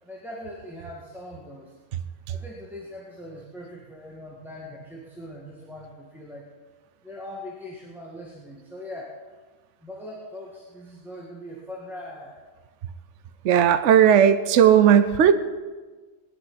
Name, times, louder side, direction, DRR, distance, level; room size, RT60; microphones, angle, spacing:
voice 1, 0.0-1.7 2.3-6.5 7.0-9.2 9.8-12.4, left 1 dB, ahead, -3 dB, 1.9 m, -41 dB
voice 2, 13.4-15.3, right 9 dB, 60° right, 10 dB, 1.0 m, -16 dB
20.0 x 6.8 x 9.8 m, 1.4 s
omnidirectional pair, 1.5 m